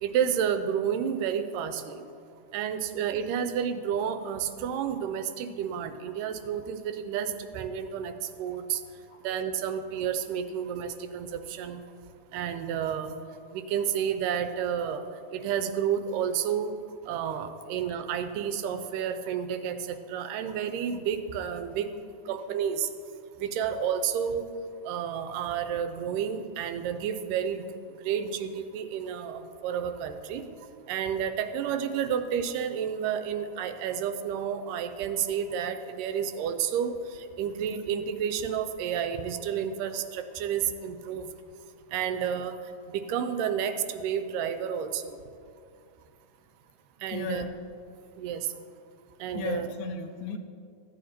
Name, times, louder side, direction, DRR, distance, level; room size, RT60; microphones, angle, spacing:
voice 1, 0.0-2.1 2.5-8.8 9.2-11.8 12.3-13.2 13.5-15.1 15.3-16.8 17.0-21.9 22.3-22.9 23.4-24.5 24.8-27.7 28.0-30.5 30.9-41.3 41.9-42.6 42.9-45.2 47.0-47.4 48.2-48.5 49.2-49.7, right 8 dB, 85° right, 9 dB, 2.3 m, -30 dB
voice 2, 21.9-22.6 47.1-47.6 49.3-50.4, left 5 dB, 80° left, 8 dB, 1.9 m, -36 dB
15.0 x 9.2 x 4.4 m, 2.4 s
omnidirectional pair, 3.8 m